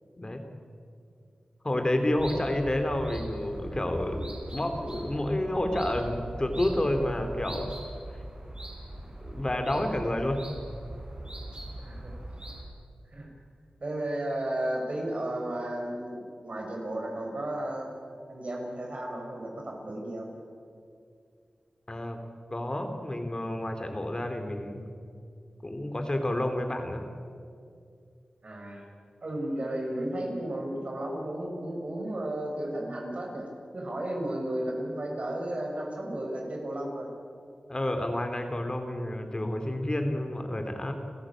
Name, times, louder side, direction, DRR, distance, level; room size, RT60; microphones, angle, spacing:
voice 1, 1.6-7.7 9.3-10.4 21.9-22.2 22.5-24.9 25.6-27.0 37.7-40.9, left 1 dB, 30° left, 5 dB, 2.8 m, -29 dB
sound 1, 2.2-12.6, right 1 dB, 35° right, 6.5 m, -41 dB
voice 2, 11.8-12.1 13.1-13.3 13.8-17.9 18.3-20.3 28.4-28.8 29.2-33.5 33.7-37.1, right 1 dB, 55° right, 0 dB, 6.4 m, -33 dB
30.0 x 14.5 x 8.7 m, 2.3 s
wide cardioid pair, 60°, 3 cm